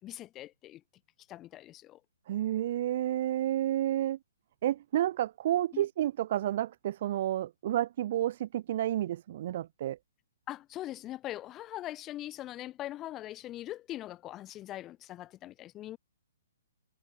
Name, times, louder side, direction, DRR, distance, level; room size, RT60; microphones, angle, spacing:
voice 1, 0.0-0.8 1.3-2.0 5.7-5.8 10.5-16.0, left 14 dB, 20° left, 3.0 m, -41 dB
voice 2, 2.3-4.2 4.6-10.0, right 12 dB, 45° right, 3.8 m, -30 dB
hypercardioid pair, 155°, 0 cm